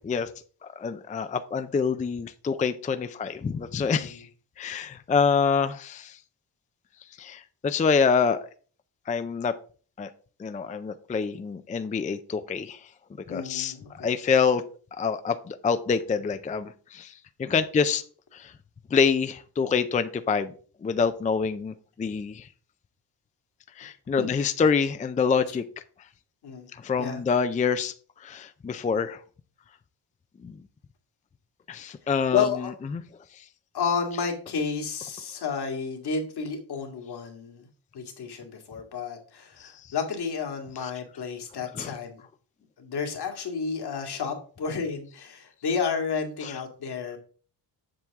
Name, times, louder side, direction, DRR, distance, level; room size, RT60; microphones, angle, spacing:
voice 1, 0.6-4.3 4.6-6.2 7.2-8.4 9.1-9.5 10.0-10.1 10.4-12.9 13.3-14.6 15.0-18.0 18.3-18.5 18.9-20.5 20.8-22.5 23.8-25.6 26.7-29.2 30.4-30.6 31.7-33.0 33.3-33.5 39.6-39.9 40.8-40.9 41.7-42.0 46.4-46.6, left 5 dB, 20° left, 11 dB, 0.4 m, -26 dB
voice 2, 13.3-14.1 24.2-24.3 26.4-26.7 27.0-27.2 32.3-32.7 33.7-37.6 37.9-42.2 42.8-47.2, left 6 dB, 70° left, 3 dB, 2.1 m, -31 dB
7.6 x 7.1 x 3.5 m, 0.41 s
cardioid pair, 115°, 41 cm